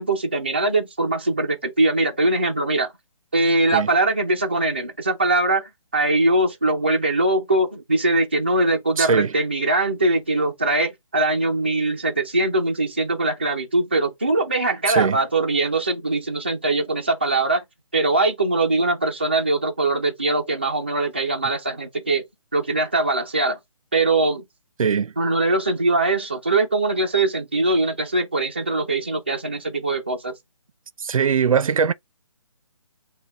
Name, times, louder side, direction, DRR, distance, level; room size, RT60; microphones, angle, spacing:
voice 1, 0.0-2.9 3.3-17.6 17.9-22.3 22.5-23.6 23.9-24.4 25.2-30.3, right 2 dB, 20° right, 0.4 m, -22 dB
voice 2, 9.0-9.3 14.9-15.2 24.8-25.1 31.0-31.9, right 6 dB, 90° right, 0.5 m, -20 dB
5.7 x 2.2 x 3.0 m
hypercardioid pair, 180°, 17 cm